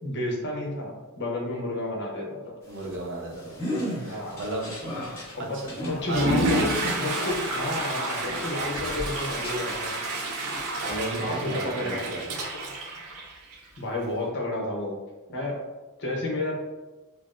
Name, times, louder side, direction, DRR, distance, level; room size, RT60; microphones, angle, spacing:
voice 1, 0.0-2.5 4.0-4.4 5.3-5.6 5.9-10.0 11.2-12.1 13.8-15.0 15.3-15.6 16.0-16.5, left 1 dB, 55° left, -1 dB, 0.8 m, -31 dB
sound 1, 2.6-10.2 10.5-11.5, equal, 10° left, 1.1 m, -37 dB
voice 2, 2.7-3.6 4.0-4.7 5.4-5.7 6.1-6.3 10.8-12.3, right 2 dB, 60° right, 0 dB, 0.7 m, -34 dB
Water / Toilet flush, 6.0-13.8, right 1 dB, 90° right, 0.6 m, -30 dB
5.8 x 2.0 x 2.5 m, 1.2 s
head